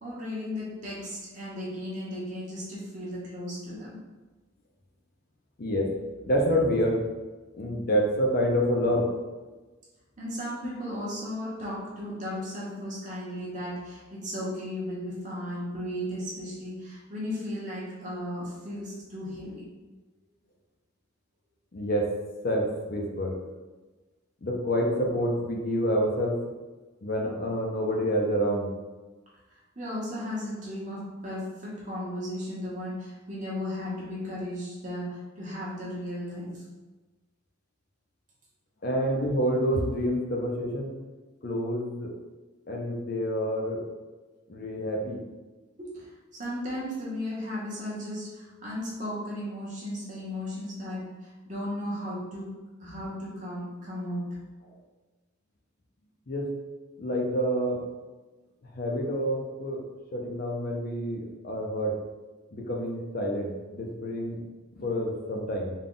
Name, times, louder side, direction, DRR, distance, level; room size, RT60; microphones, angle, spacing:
voice 1, 0.0-4.0 10.2-19.7 29.5-36.6 39.1-39.2 45.8-52.5 52.8-54.3, left 1 dB, 40° right, -6 dB, 1.1 m, -35 dB
voice 2, 5.6-5.9 6.3-7.0 7.6-9.1 21.7-22.1 22.4-23.3 24.4-26.4 27.0-28.7 38.8-40.9 41.4-42.1 42.7-43.8 44.5-45.2 56.3-56.5 57.0-57.8 58.8-59.8 60.1-61.9 62.5-64.4 64.7-65.7, equal, 50° left, 0 dB, 0.5 m, -27 dB
3.6 x 2.3 x 3.8 m, 1.2 s
head